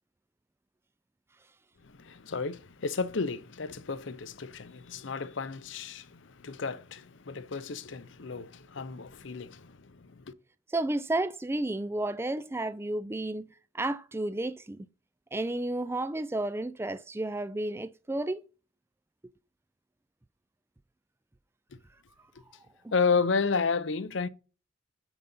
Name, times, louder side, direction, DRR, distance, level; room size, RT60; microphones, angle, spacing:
voice 1, 1.8-10.3 22.9-24.3, left 5 dB, 65° left, 0.7 m, -32 dB
voice 2, 10.7-13.5 13.7-14.9 15.3-18.4, right 2 dB, 10° right, 0.3 m, -32 dB
9.2 x 3.9 x 5.5 m
head